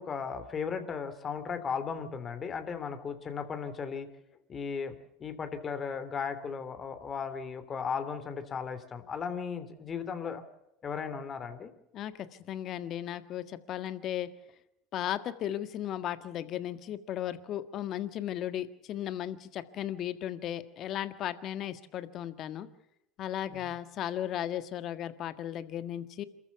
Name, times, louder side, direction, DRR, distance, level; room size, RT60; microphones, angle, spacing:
voice 1, 0.0-4.1 4.5-4.9 5.2-10.4 10.8-11.7 23.5-23.7, left 6 dB, 35° left, 11 dB, 3.0 m, -36 dB
voice 2, 11.9-14.3 14.9-22.7 23.2-26.2, left 11 dB, 50° left, 12 dB, 1.6 m, -36 dB
27.5 x 14.5 x 7.0 m, 0.83 s
hypercardioid pair, 75°, 0 cm